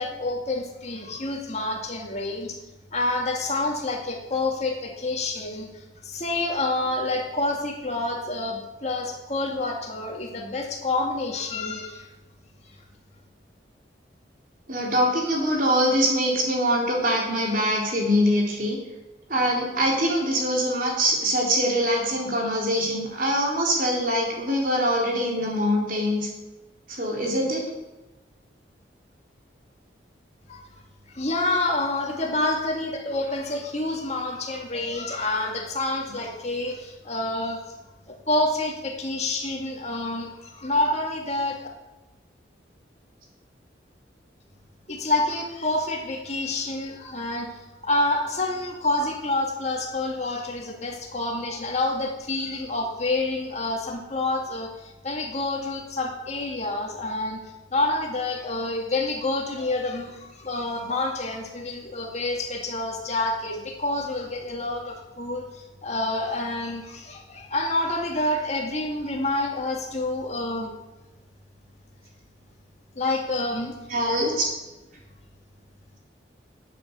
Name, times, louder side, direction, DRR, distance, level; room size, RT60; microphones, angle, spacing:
voice 1, 0.0-2.6 2.9-12.1 30.5-30.6 31.1-37.6 38.1-41.6 44.9-57.4 57.7-70.7 73.0-73.7, left 2 dB, 35° left, 1 dB, 2.3 m, -28 dB
voice 2, 14.7-18.8 19.3-26.3 26.9-27.6 73.9-74.5, equal, 50° right, -1 dB, 3.8 m, -23 dB
12.5 x 8.5 x 8.3 m, 1.1 s
head